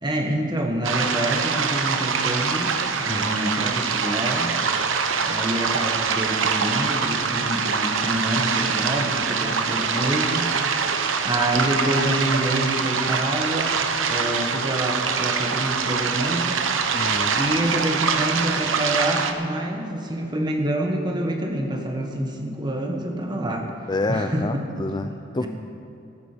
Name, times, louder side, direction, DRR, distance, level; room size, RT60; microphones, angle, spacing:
voice 1, 0.0-2.7 3.0-4.6 5.2-10.9 11.2-13.8 14.1-16.5 17.3-23.7 24.1-24.6 25.4-25.5, right 1 dB, 20° right, 2 dB, 1.5 m, -27 dB
sound 1, 0.8-19.3, right 5 dB, 85° right, 0.9 m, -24 dB
voice 2, 16.9-17.4 23.9-24.5 24.8-25.5, left 2 dB, 20° left, 8 dB, 0.4 m, -27 dB
14.5 x 14.0 x 5.2 m, 2.8 s
head